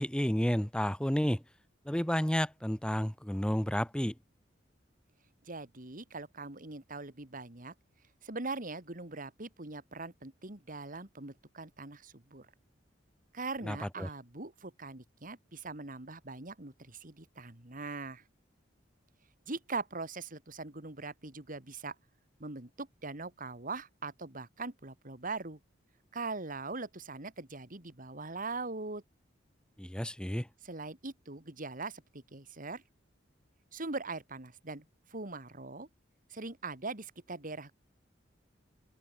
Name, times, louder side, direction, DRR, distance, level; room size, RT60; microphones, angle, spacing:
voice 1, 0.0-1.4 1.9-4.1 13.6-14.1 29.8-30.5, equal, 5° left, 0.9 m, -31 dB
voice 2, 5.4-7.7 8.2-12.5 13.3-18.2 19.5-21.9 22.4-25.6 26.1-29.0 30.6-32.8 33.7-34.8 35.1-35.9 36.3-37.7, right 3 dB, 45° right, 2.7 m, -41 dB
open air
head